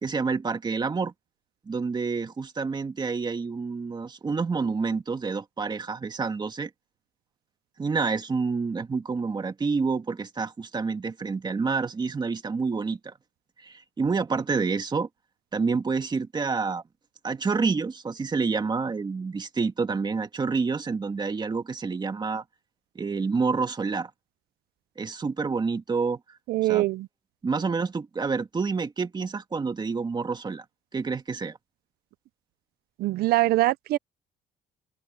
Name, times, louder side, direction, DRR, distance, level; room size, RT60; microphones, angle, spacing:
voice 1, 0.0-1.1 1.7-6.7 7.8-13.1 13.6-15.1 15.5-16.8 17.2-22.4 23.0-24.1 25.0-26.4 26.6-26.8 27.4-30.6 30.9-31.6, right 4 dB, 25° right, 2.2 m, -28 dB
voice 2, 26.5-27.1 33.0-34.0, right 17 dB, 65° right, 0.5 m, -23 dB
open air
cardioid pair, 110°, 17 cm